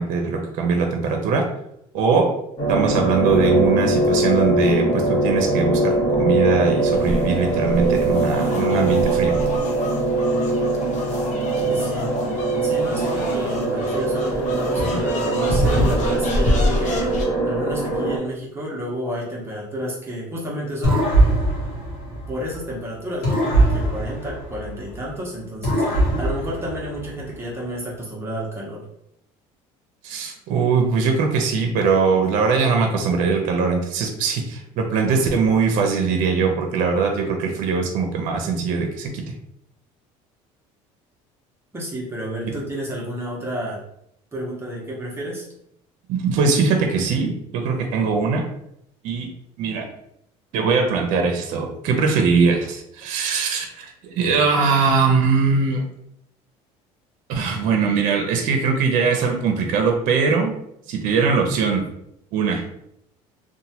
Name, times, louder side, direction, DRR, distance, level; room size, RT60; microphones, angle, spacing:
voice 1, 0.0-1.4 1.9-2.3 2.7-5.9 6.2-9.3 30.0-39.2 42.4-42.5 46.1-48.4 49.0-49.3 49.6-49.9 50.5-55.8 57.3-60.5 60.9-61.9 62.3-62.6, right 5 dB, 70° right, 3 dB, 0.6 m, -21 dB
sound 1, 2.6-18.2, right 2 dB, 35° left, 1.0 m, -22 dB
sound 2, 6.9-17.3, left 1 dB, 55° left, 0.7 m, -27 dB
voice 2, 11.6-12.2 12.6-17.0 17.4-21.1 22.1-28.8 41.7-43.8 44.3-45.5, equal, 15° right, -4 dB, 0.8 m, -31 dB
sound 3, 20.8-22.7 23.2-25.1 25.6-27.3, right 1 dB, 85° left, 1.2 m, -21 dB
2.9 x 2.2 x 2.8 m, 0.76 s
cardioid pair, 115°, 14 cm